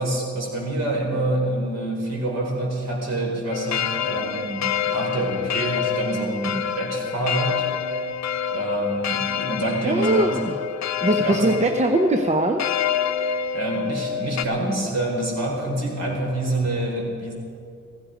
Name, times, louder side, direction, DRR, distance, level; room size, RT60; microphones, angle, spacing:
voice 1, 0.0-7.7 8.5-10.4 11.1-11.5 13.5-17.3, right 1 dB, 55° right, -2 dB, 4.8 m, -26 dB
sound 1, 3.5-14.5, left 8 dB, 60° left, 0.6 m, -27 dB
voice 2, 9.8-10.7 11.0-12.6, right 2 dB, 20° right, 4 dB, 0.8 m, -21 dB
16.0 x 15.0 x 5.2 m, 2.5 s
cardioid pair, 105°, 31 cm